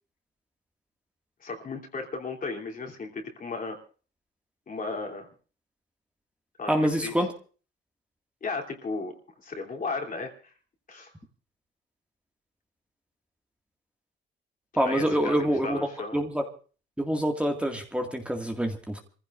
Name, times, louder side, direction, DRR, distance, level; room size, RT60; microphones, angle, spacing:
voice 1, 1.4-3.8 4.7-5.3 6.6-7.2 8.4-10.5 10.9-11.1 14.8-16.2, left 3 dB, 45° left, 3.1 m, -35 dB
voice 2, 6.7-7.3 14.8-15.9 16.1-16.4 17.0-19.0, equal, 5° right, 2.0 m, -26 dB
26.5 x 15.5 x 2.5 m
cardioid pair, 90°, 20 cm